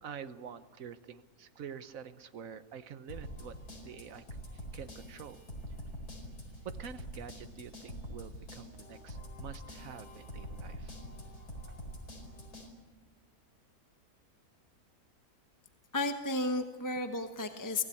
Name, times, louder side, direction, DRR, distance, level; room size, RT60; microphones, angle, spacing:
voice 1, 0.0-4.3 4.5-5.4 6.6-10.9, right 7 dB, 65° right, 11 dB, 1.4 m, -47 dB
sound 1, 3.1-12.7, equal, 90° left, 5.1 m, -45 dB
voice 2, 15.9-17.8, left 2 dB, 15° left, 6 dB, 1.0 m, -33 dB
24.0 x 16.5 x 8.4 m, 1.4 s
omnidirectional pair, 1.6 m